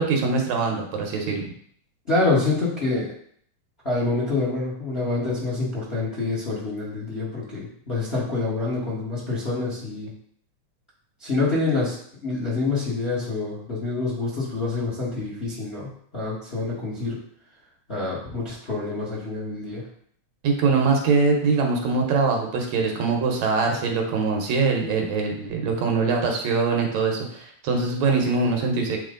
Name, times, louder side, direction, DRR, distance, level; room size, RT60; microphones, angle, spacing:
voice 1, 0.0-1.5 20.4-29.0, right 4 dB, 70° right, 2 dB, 2.1 m, -23 dB
voice 2, 2.1-3.1 3.8-10.1 11.2-12.0 12.2-17.2 17.9-19.8, left 3 dB, 35° left, -6 dB, 1.0 m, -26 dB
8.8 x 3.0 x 3.8 m, 0.63 s
omnidirectional pair, 3.4 m